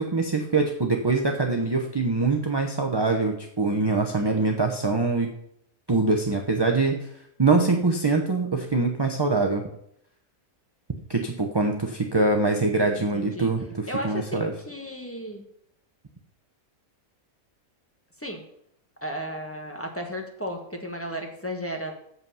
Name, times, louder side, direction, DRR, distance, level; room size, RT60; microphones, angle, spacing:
voice 1, 0.0-5.3 5.9-7.0 7.4-9.6 11.1-14.5, right 3 dB, 25° right, 3 dB, 0.7 m, -24 dB
voice 2, 13.0-13.5 13.9-15.4 18.2-18.4 19.0-21.9, equal, 10° left, 2 dB, 1.3 m, -34 dB
8.1 x 7.7 x 5.6 m, 0.72 s
omnidirectional pair, 1.5 m